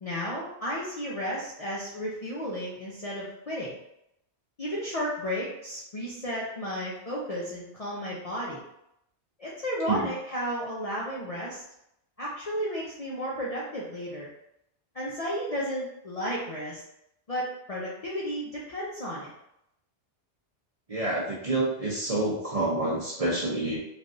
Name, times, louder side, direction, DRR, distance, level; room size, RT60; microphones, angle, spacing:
voice 1, 0.0-3.8 4.6-8.6 9.4-11.6 12.2-14.3 14.9-16.8 17.3-19.3, equal, 45° left, -6 dB, 0.5 m, -33 dB
voice 2, 20.9-23.8, right 2 dB, 40° right, -5 dB, 0.7 m, -28 dB
3.3 x 2.3 x 2.5 m, 0.79 s
omnidirectional pair, 1.2 m